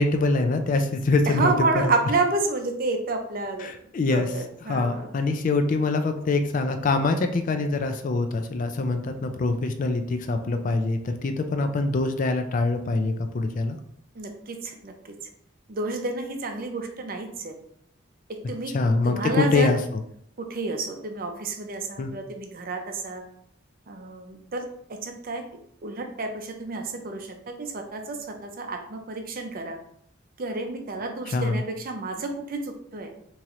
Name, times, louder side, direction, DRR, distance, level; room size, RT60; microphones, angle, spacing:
voice 1, 0.0-1.5 1.8-1.9 3.6-4.3 4.7-13.8 18.7-20.0 22.0-22.1 31.3-31.6, left 3 dB, 40° left, 6 dB, 0.3 m, -24 dB
voice 2, 1.3-3.7 4.1-5.1 14.1-15.2 15.7-17.6 18.3-18.7 19.0-19.8 20.4-23.2 23.9-25.4 25.8-29.8 30.4-33.1, right 3 dB, 45° right, 5 dB, 0.5 m, -30 dB
3.6 x 3.0 x 2.9 m, 0.69 s
head